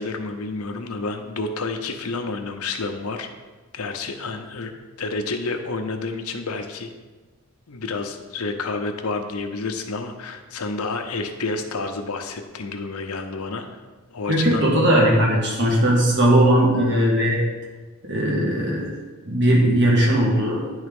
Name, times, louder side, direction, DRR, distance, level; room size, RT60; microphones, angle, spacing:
voice 1, 0.0-3.3 3.7-4.7 5.0-6.9 7.7-13.7 14.1-14.6, left 3 dB, 80° left, 6 dB, 0.8 m, -29 dB
voice 2, 14.3-17.4 18.0-18.9 19.2-20.6, right 1 dB, 55° right, -3 dB, 1.6 m, -18 dB
9.9 x 3.6 x 5.3 m, 1.3 s
head